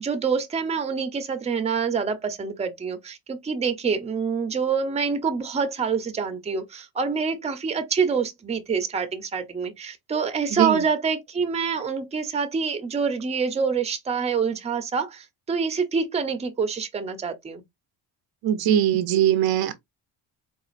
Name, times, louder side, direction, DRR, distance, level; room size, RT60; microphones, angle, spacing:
voice 1, 0.0-17.6, right 5 dB, 15° right, 0.6 m, -26 dB
voice 2, 10.5-10.8 18.4-19.7, right 11 dB, 55° right, 0.5 m, -21 dB
3.9 x 2.4 x 2.4 m
cardioid pair, 115°, 44 cm